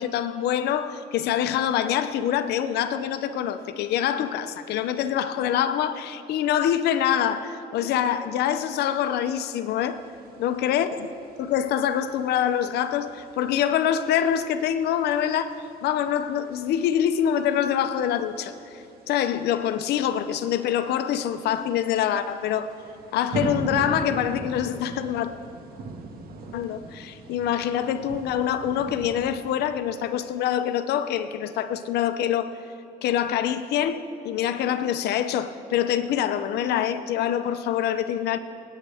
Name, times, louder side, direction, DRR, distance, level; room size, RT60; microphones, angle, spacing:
voice 1, 0.0-10.0 10.4-11.1 11.4-22.7 23.1-25.3 26.5-32.5 33.0-38.4, left 10 dB, 75° left, 0.7 m, -25 dB
sound 1, 9.8-29.1, right 3 dB, 60° right, 1.8 m, -41 dB
26.5 x 9.4 x 3.5 m
cardioid pair, 110°, 17 cm